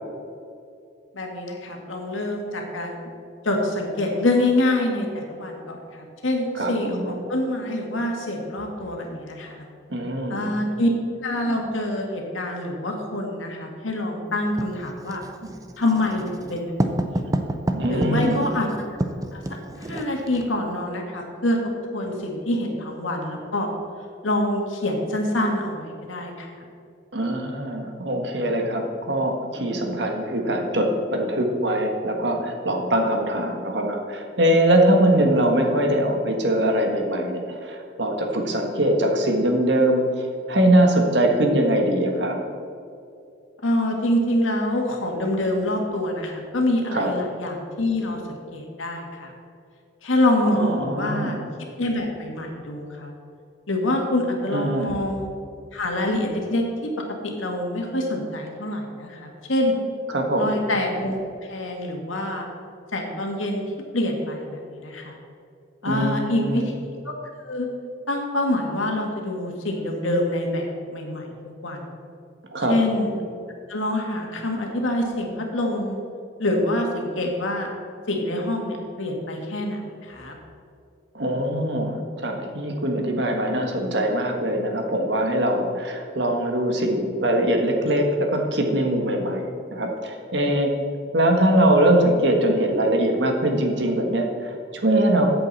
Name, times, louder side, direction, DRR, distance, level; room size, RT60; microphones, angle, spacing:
voice 1, 1.1-3.0 3.4-9.6 10.3-10.9 11.2-15.2 15.8-16.2 16.5-16.7 17.0-17.2 17.9-18.7 19.3-19.4 19.8-21.6 21.9-23.7 24.2-26.5 43.6-49.3 50.0-51.4 51.8-53.1 53.7-55.3 55.7-56.6 57.2-59.8 60.4-62.5 62.9-63.6 63.9-65.2 65.8-66.6 67.1-67.2 67.4-67.7 68.1-71.3 71.6-71.9 72.7-73.2 73.7-76.0 76.4-77.7 78.1-80.3, left 1 dB, 90° left, 1 dB, 2.0 m, -26 dB
voice 2, 6.5-7.2 9.9-10.5 17.2-17.3 17.7-18.4 27.1-40.0 40.5-42.4 46.9-47.1 50.5-51.5 54.5-55.0 60.1-60.6 65.8-66.6 72.5-72.8 81.1-90.7 91.1-95.3, right 1 dB, 60° right, 2 dB, 1.6 m, -22 dB
Writing, 14.6-20.5, right 1 dB, 20° right, 0.6 m, -29 dB
14.0 x 7.9 x 4.2 m, 2.5 s
head